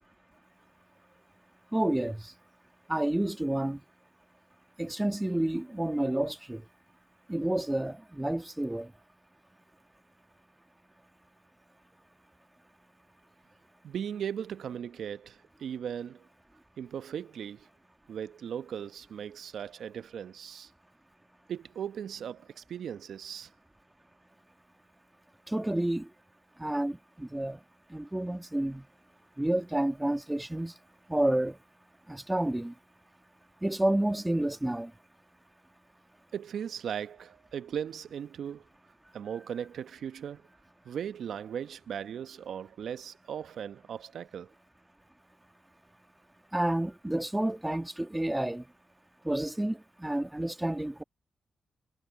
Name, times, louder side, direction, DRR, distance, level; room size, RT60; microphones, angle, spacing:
voice 1, 1.7-2.3 2.9-3.8 4.8-6.6 7.3-8.9 25.5-26.1 26.6-27.6 27.9-28.8 29.4-30.7 31.1-31.6 32.1-32.7 33.6-34.9 46.5-48.6 49.2-51.0, right 1 dB, 15° right, 2.1 m, -30 dB
voice 2, 13.8-16.3 16.8-17.7 18.1-20.7 21.5-23.5 36.3-38.7 39.1-40.5 40.8-44.5, right 8 dB, 70° right, 1.0 m, -38 dB
supercardioid pair, 45°, 0 cm